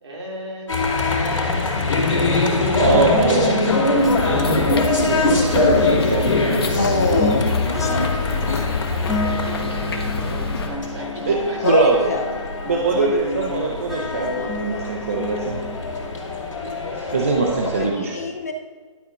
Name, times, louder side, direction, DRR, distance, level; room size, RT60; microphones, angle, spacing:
voice 1, 0.0-1.7 2.4-3.5 7.7-11.9, right 1 dB, 55° right, -2 dB, 2.9 m, -37 dB
sound 1, 0.7-17.9, left 3 dB, 70° left, 2.9 m, -24 dB
voice 2, 2.8-4.8 5.1-7.2 11.3-11.4 11.6-12.1 12.7-15.6 16.9-18.3, right 3 dB, 25° right, 0 dB, 0.7 m, -22 dB
sound 2, 3.4-16.4, left 3 dB, ahead, 1.1 m, -30 dB
sound 3, 4.0-10.7, left 4 dB, 45° left, 1.3 m, -25 dB
voice 3, 6.8-8.1 8.5-8.6 11.6-12.4 13.0-13.2 14.4-14.8 17.8-18.5, left 3 dB, 30° left, 5 dB, 0.5 m, -26 dB
11.5 x 4.9 x 5.9 m, 1.5 s
hypercardioid pair, 180°, 17 cm